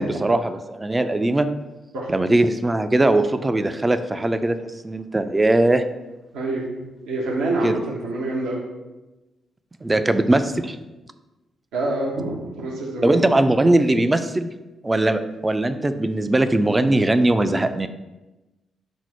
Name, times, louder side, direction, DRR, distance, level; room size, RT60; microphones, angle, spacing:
voice 1, 0.0-1.5 2.1-4.6 4.8-5.8 7.6-7.7 9.8-10.8 13.0-14.5 14.8-17.9, right 2 dB, 25° right, 10 dB, 0.4 m, -20 dB
voice 2, 6.3-6.7 7.1-8.6 9.9-10.0 11.7-13.3, right 2 dB, 80° right, -2 dB, 0.7 m, -26 dB
4.3 x 2.0 x 4.5 m, 1.1 s
hypercardioid pair, 40°, 0 cm